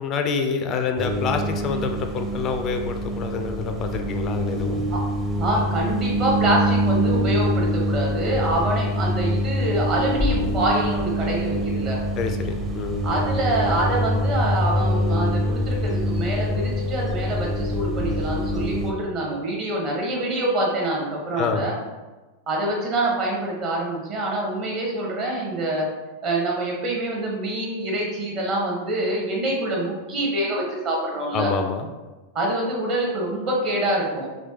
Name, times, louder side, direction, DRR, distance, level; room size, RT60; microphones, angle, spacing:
voice 1, 0.0-4.8 12.2-13.0 21.4-21.7 31.3-31.9, left 5 dB, 30° left, 6 dB, 0.3 m, -27 dB
sound 1, 1.0-18.9, equal, 15° right, 0.6 m, -25 dB
voice 2, 5.4-12.0 13.0-21.7 22.5-25.9 26.2-31.5 32.3-34.3, right 1 dB, 40° right, -2 dB, 1.0 m, -25 dB
3.3 x 3.1 x 2.8 m, 1.2 s
figure-of-eight pair, 90°, 0 cm